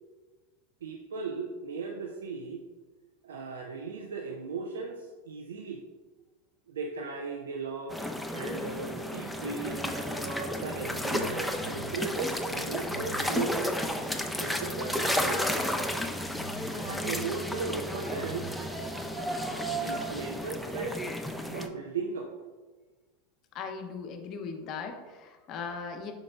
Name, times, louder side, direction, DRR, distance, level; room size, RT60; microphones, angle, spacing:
voice 1, 0.8-2.6 3.2-5.8 6.7-9.9 10.6-13.8 14.4-15.4 16.7-18.5 19.7-21.1 21.5-22.3, right 4 dB, 80° right, 2 dB, 0.3 m, -37 dB
sound 1, 7.9-21.7, left 1 dB, 5° left, 0.3 m, -33 dB
sound 2, 9.6-20.9, right 3 dB, 30° right, 0.7 m, -41 dB
voice 2, 23.5-26.1, left 5 dB, 45° left, 5 dB, 0.6 m, -38 dB
5.1 x 3.9 x 2.2 m, 1.3 s
hypercardioid pair, 90°, 0 cm